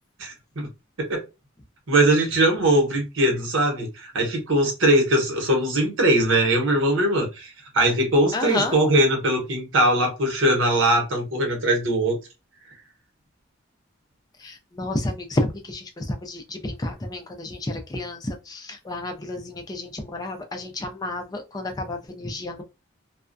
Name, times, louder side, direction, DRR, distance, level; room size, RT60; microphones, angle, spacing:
voice 1, 0.2-0.7 1.0-1.2 1.9-12.2, right 1 dB, 75° right, 1.0 m, -21 dB
voice 2, 8.3-8.8 14.4-22.6, left 2 dB, 20° left, 0.4 m, -30 dB
2.3 x 2.1 x 2.5 m
head